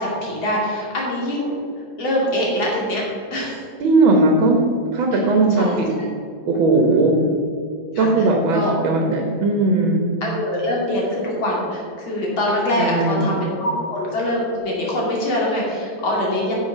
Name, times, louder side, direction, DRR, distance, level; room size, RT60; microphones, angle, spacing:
voice 1, 0.0-1.5 2.0-3.0 3.3-3.6 5.6-6.1 6.5-7.3 7.9-8.2 8.5-8.7 10.2-16.5, left 1 dB, 85° left, -3 dB, 3.3 m, -24 dB
voice 2, 3.8-4.6 4.9-5.9 6.5-7.2 8.0-10.1 12.8-13.3, right 2 dB, 90° right, 2 dB, 2.0 m, -18 dB
11.0 x 6.7 x 5.5 m, 2.4 s
omnidirectional pair, 2.1 m